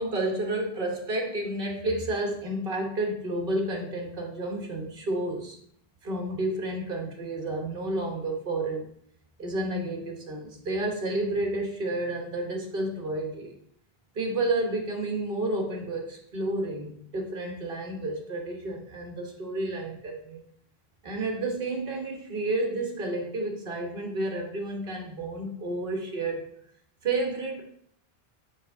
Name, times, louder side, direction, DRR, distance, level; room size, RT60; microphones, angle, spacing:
voice 1, 0.0-5.6 6.0-8.9 9.4-13.5 14.1-20.4 21.0-26.5 27.0-27.6, right 2 dB, 60° right, 2 dB, 1.5 m, -30 dB
6.3 x 4.5 x 3.6 m, 0.65 s
omnidirectional pair, 1.0 m